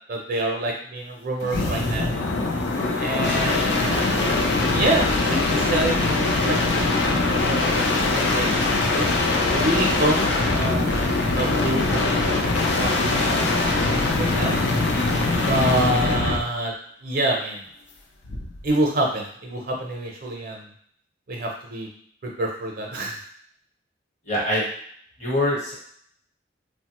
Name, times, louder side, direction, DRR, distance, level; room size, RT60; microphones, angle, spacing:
voice 1, 0.1-2.1 3.0-6.7 7.0-9.1 9.5-10.2 10.5-14.6 15.4-16.7 17.0-17.7 18.6-20.7 21.3-21.9 22.2-23.2, right 1 dB, 50° right, 1 dB, 0.6 m, -27 dB
sound 1, 1.4-16.5 18.2-18.7, left 2 dB, 75° left, 0.5 m, -22 dB
voice 2, 24.3-24.7 25.2-25.7, left 1 dB, 40° left, -4 dB, 1.0 m, -23 dB
3.1 x 2.1 x 2.9 m, 0.63 s
head